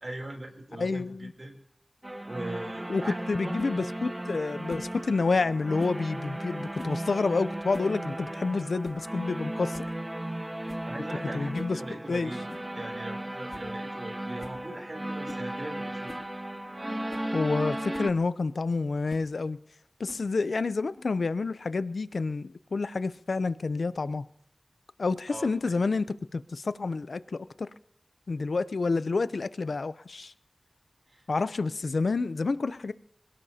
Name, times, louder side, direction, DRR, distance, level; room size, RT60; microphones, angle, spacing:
voice 1, 0.0-1.5 2.2-3.8 10.5-16.1 25.3-25.7 31.1-31.3, right 1 dB, 50° right, 3 dB, 3.3 m, -40 dB
voice 2, 0.8-1.3 2.9-3.0 3.3-9.9 11.3-11.8 12.1-12.3 17.3-19.6 20.0-24.2 25.0-26.1 26.3-27.7 28.3-30.3 31.3-32.9, left 3 dB, 85° left, 14 dB, 0.5 m, -29 dB
sound 1, 2.0-18.1, right 1 dB, 25° right, 0.8 m, -36 dB
sound 2, 3.6-3.7 4.7-4.9 5.8-6.0 6.7-7.0 7.5-8.0 8.2-8.3 8.8-9.1 9.4-9.5 9.7-10.0 10.7-10.9 11.5-11.8 12.5-12.7 13.1-13.2 13.5-13.7 14.0-14.1 14.4-14.6 15.2-15.5 16.1-16.3 16.8-16.9 17.1-17.3 17.9-18.1 19.1-19.3 20.1-20.4, left 2 dB, 55° left, 1.9 m, -47 dB
26.5 x 17.5 x 2.8 m, 0.69 s
wide cardioid pair, 60°, 0 cm